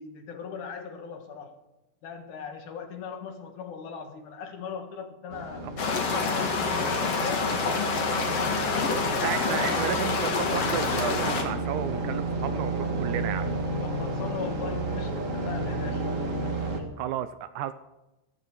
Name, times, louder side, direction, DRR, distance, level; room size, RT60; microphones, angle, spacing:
voice 1, 0.0-1.5 2.0-5.7 6.1-7.6 13.8-16.1 16.8-16.9, left 6 dB, 70° left, 6 dB, 2.9 m, -39 dB
sound 1, 5.3-16.8, right 2 dB, 30° right, 1.6 m, -32 dB
sound 2, 5.8-11.4, left 4 dB, 50° left, 2.7 m, -27 dB
voice 2, 9.2-13.5 17.0-17.7, right 11 dB, 80° right, 12 dB, 1.9 m, -32 dB
14.5 x 13.5 x 4.7 m, 0.98 s
omnidirectional pair, 3.8 m